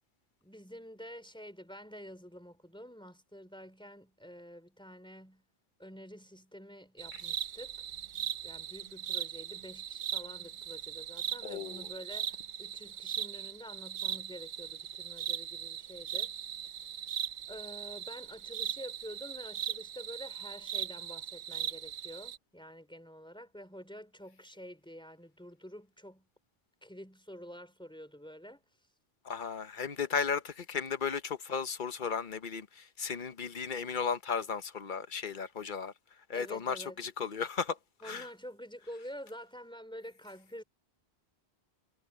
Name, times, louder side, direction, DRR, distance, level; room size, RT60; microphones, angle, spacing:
voice 1, 0.4-5.4 5.8-7.8 8.4-16.3 16.6-16.7 17.5-26.3 26.8-28.6 36.3-37.0 38.0-40.6, equal, 5° left, 4.1 m, -48 dB
sound 1, 7.0-22.4, right 10 dB, 55° right, 0.6 m, -39 dB
voice 2, 11.4-11.9 29.2-35.9 36.3-37.8 38.0-38.3, left 6 dB, 50° left, 1.1 m, -35 dB
omnidirectional pair, 1.1 m